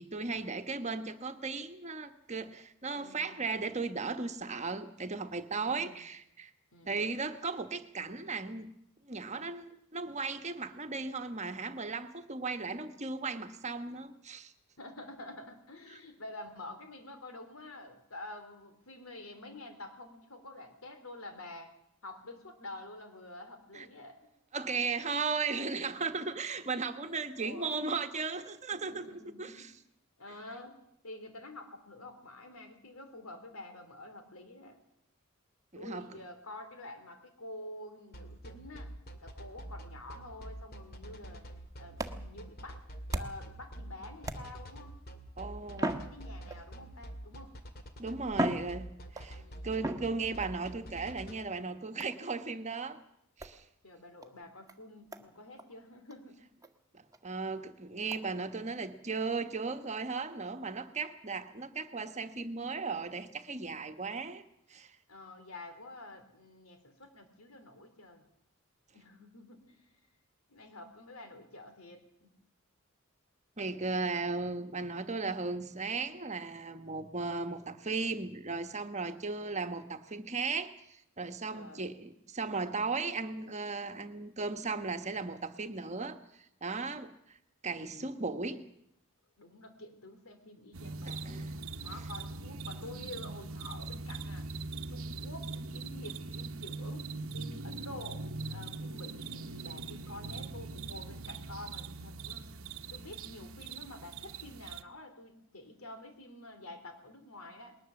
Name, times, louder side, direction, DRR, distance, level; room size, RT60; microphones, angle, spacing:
voice 1, 0.0-6.5 6.8-8.7 9.0-14.5 23.7-23.9 24.5-29.0 29.4-29.7 35.7-36.2 45.4-45.9 48.0-53.0 53.4-53.6 56.9-64.4 64.7-65.0 73.6-86.2 86.6-87.4 87.6-88.6 91.1-91.5, right 4 dB, 35° right, 8 dB, 1.3 m, -36 dB
voice 2, 2.9-3.4 5.7-6.1 6.7-7.0 14.8-21.7 22.0-24.3 27.4-27.8 28.7-29.7 30.2-30.8 31.0-34.8 35.7-38.9 39.2-41.5 41.8-42.8 43.1-45.0 45.7-47.6 49.4-49.7 53.8-56.4 65.1-68.2 68.9-69.9 70.5-72.3 79.1-79.5 81.5-81.9 87.7-88.1 89.4-91.5 91.8-94.5 94.9-102.6 102.9-107.8, left 2 dB, 80° left, 7 dB, 3.5 m, -48 dB
sound 1, 38.1-51.3, right 1 dB, 45° left, 2.2 m, -46 dB
sound 2, 41.5-43.6 44.2-44.8 45.7-46.8 47.7-47.8 48.3-49.3 49.8-50.6 52.0-52.3 53.4-53.6 54.2-54.3 54.7-54.8 55.1-55.3 55.6-55.7 56.1-56.2 56.6-56.7 57.1-57.2 58.1-58.2, right 1 dB, 15° right, 1.2 m, -37 dB
sound 3, 90.7-104.8, right 3 dB, 70° right, 1.0 m, -41 dB
20.5 x 19.5 x 7.2 m, 0.77 s
head